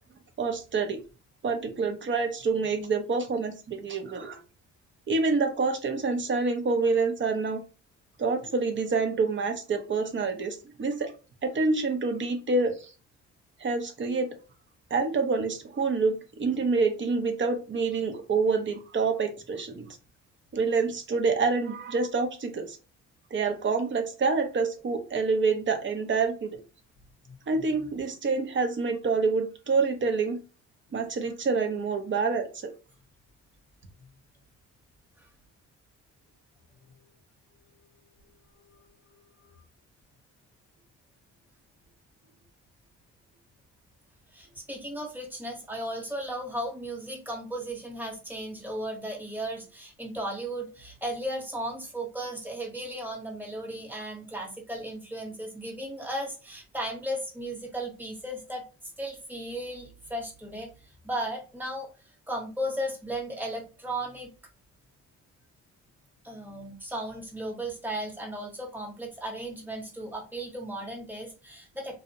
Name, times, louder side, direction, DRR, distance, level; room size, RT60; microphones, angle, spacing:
voice 1, 0.4-1.0 1.4-4.4 5.1-7.6 8.2-11.1 11.4-12.9 13.6-14.3 14.9-19.9 20.5-22.8 23.3-26.6 27.5-30.4 30.9-32.7, right 4 dB, 40° right, 6 dB, 0.6 m, -27 dB
voice 2, 44.3-58.6 59.0-60.7 61.0-61.9 62.3-64.3 66.2-72.0, right 1 dB, 5° right, -1 dB, 1.0 m, -35 dB
2.5 x 2.1 x 2.7 m, 0.33 s
cardioid pair, 90°, 30 cm